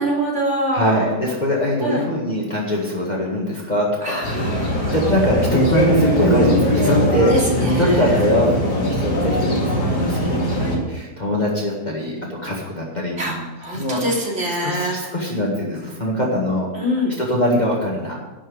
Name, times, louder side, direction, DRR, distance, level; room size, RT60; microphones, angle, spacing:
voice 1, 0.0-1.0 1.8-2.0 4.0-4.9 6.9-7.4 7.7-8.0 13.2-13.3 13.6-15.1 16.7-17.1, right 1 dB, 45° right, -3 dB, 3.2 m, -24 dB
voice 2, 0.7-4.2 4.7-7.3 7.8-13.4 13.7-14.0 14.5-18.1, left 1 dB, 25° left, -4 dB, 1.9 m, -22 dB
sound 1, 4.2-10.8, equal, 85° left, 3.1 m, -20 dB
11.0 x 6.2 x 8.0 m, 1.1 s
omnidirectional pair, 1.7 m